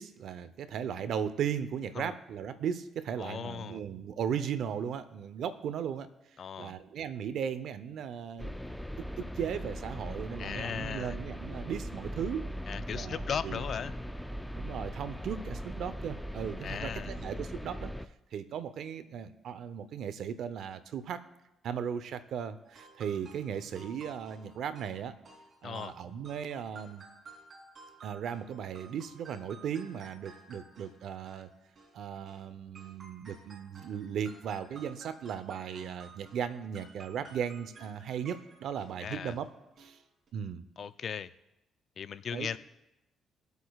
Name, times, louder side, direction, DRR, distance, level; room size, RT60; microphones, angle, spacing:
voice 1, 0.0-6.1 6.6-8.5 9.0-12.4 12.9-13.6 14.5-17.9 18.3-21.2 21.6-25.1 25.6-27.1 28.0-31.5 31.9-39.5 39.8-40.0 40.3-40.6 42.3-42.6, right 8 dB, 70° right, 13 dB, 0.7 m, -37 dB
voice 2, 3.2-3.8 6.4-6.7 10.4-11.2 12.7-13.9 16.6-17.1 25.6-26.0 39.0-39.4 40.8-41.3 42.0-42.6, left 7 dB, 55° left, 13 dB, 0.5 m, -37 dB
sound 1, 8.4-18.1, equal, 5° left, 0.5 m, -40 dB
sound 2, 22.6-32.5 32.7-39.5 39.8-40.0 40.3-40.4, right 3 dB, 45° right, 3.0 m, -54 dB
24.0 x 8.1 x 2.4 m, 0.95 s
cardioid pair, 90°, 0 cm